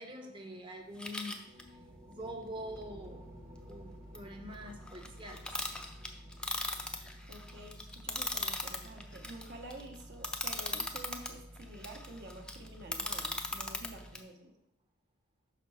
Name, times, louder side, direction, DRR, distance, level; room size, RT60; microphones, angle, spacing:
voice 1, 0.0-1.4 2.1-3.2 3.7-5.4, equal, 25° right, 3 dB, 0.8 m, -44 dB
sound 1, 0.8-10.5, equal, 40° right, 1.3 m, -57 dB
sound 2, 1.0-1.6 4.1-4.2 4.5-11.3 11.6-14.2, left 2 dB, 5° left, 0.4 m, -38 dB
sound 3, 2.7-14.1, equal, 70° right, 1.2 m, -52 dB
voice 2, 7.3-14.5, right 1 dB, 55° right, 3 dB, 1.0 m, -49 dB
5.6 x 4.2 x 5.5 m, 0.84 s
head